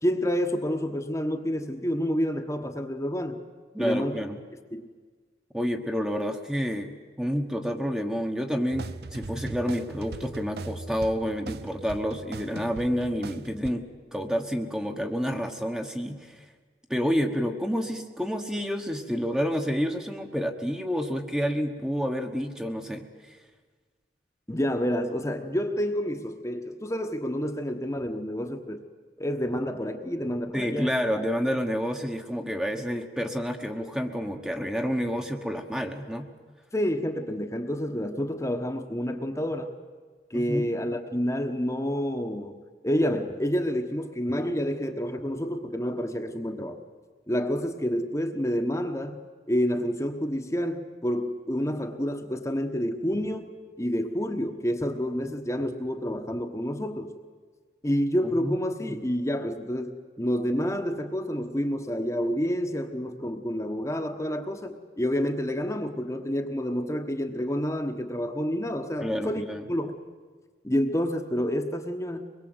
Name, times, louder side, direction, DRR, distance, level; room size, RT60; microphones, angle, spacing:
voice 1, 0.0-3.4 3.8-4.2 4.7-4.9 24.5-28.8 29.2-30.9 36.7-39.7 40.3-46.8 47.3-49.2 49.5-57.1 57.8-70.0 70.6-72.2, equal, 15° left, 5 dB, 1.2 m, -29 dB
voice 2, 3.7-4.4 5.5-16.4 16.9-23.4 30.5-36.3 40.3-40.7 58.4-58.6 69.0-69.6, equal, 5° right, 4 dB, 1.2 m, -29 dB
sound 1, 8.7-13.7, right 3 dB, 65° right, 0.7 m, -39 dB
24.0 x 21.5 x 8.0 m, 1.5 s
head